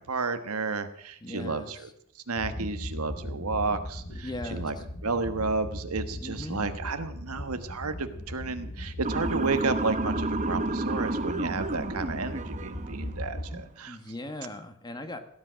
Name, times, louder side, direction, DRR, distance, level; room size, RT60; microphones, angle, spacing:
voice 1, 0.0-1.9 2.3-4.8 5.0-14.0, right 3 dB, 80° right, 9 dB, 1.4 m, -32 dB
voice 2, 1.2-1.9 4.1-4.8 6.2-6.7 13.9-15.2, left 1 dB, 20° left, 8 dB, 1.4 m, -39 dB
sound 1, 2.4-13.6, left 1 dB, 65° left, 2.9 m, -38 dB
Motor vehicle (road) / Siren, 9.0-13.2, right 2 dB, 35° right, 1.1 m, -31 dB
17.5 x 10.5 x 6.3 m, 0.67 s
head